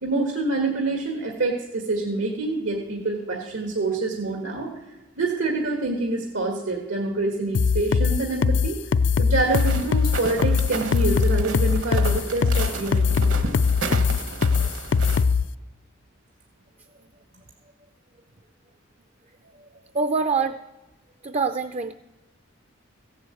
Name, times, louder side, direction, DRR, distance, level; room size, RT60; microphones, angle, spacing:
voice 1, 0.0-4.7 5.2-8.8 9.2-13.3, right 3 dB, 85° right, 1 dB, 1.7 m, -26 dB
sound 1, 7.5-15.4, left 5 dB, 65° left, 0.4 m, -20 dB
sound 2, 9.4-15.2, right 3 dB, 70° right, 1.3 m, -33 dB
voice 2, 19.9-20.6 21.2-21.9, right 4 dB, 35° right, 10 dB, 0.4 m, -25 dB
16.0 x 7.8 x 7.8 m, 1.1 s
head